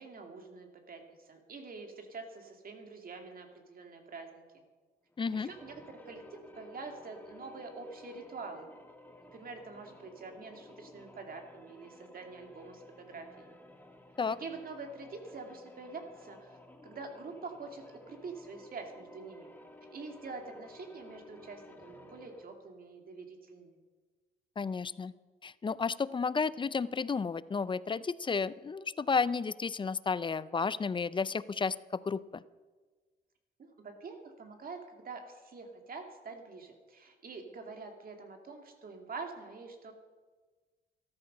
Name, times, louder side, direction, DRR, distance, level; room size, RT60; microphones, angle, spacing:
voice 1, 0.0-4.6 5.3-8.7 9.3-13.6 14.4-16.6 16.8-19.5 19.9-23.7 33.6-39.9, right 4 dB, 45° right, 4 dB, 2.4 m, -46 dB
sound 1, 5.1-22.6, left 1 dB, 10° left, 1.5 m, -55 dB
voice 2, 5.2-5.5 14.2-14.4 24.6-25.1 25.4-32.4, left 5 dB, 25° left, 18 dB, 0.4 m, -32 dB
13.5 x 13.0 x 5.5 m, 1.4 s
cardioid pair, 90°, 20 cm